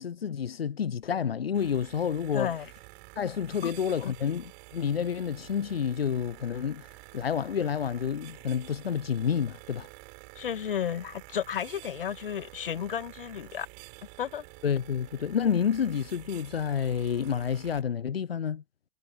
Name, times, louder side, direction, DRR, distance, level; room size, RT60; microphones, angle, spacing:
voice 1, 0.0-2.5 3.2-6.9 7.1-9.9 14.6-18.6, left 7 dB, 85° left, 0.5 m, -29 dB
sound 1, 1.5-17.8, right 37 dB, 40° right, 7.9 m, -49 dB
voice 2, 2.3-2.7 3.6-3.7 4.0-4.1 10.4-13.7 14.2-14.5, left 9 dB, 65° left, 2.0 m, -33 dB
figure-of-eight pair, 110°, 29 cm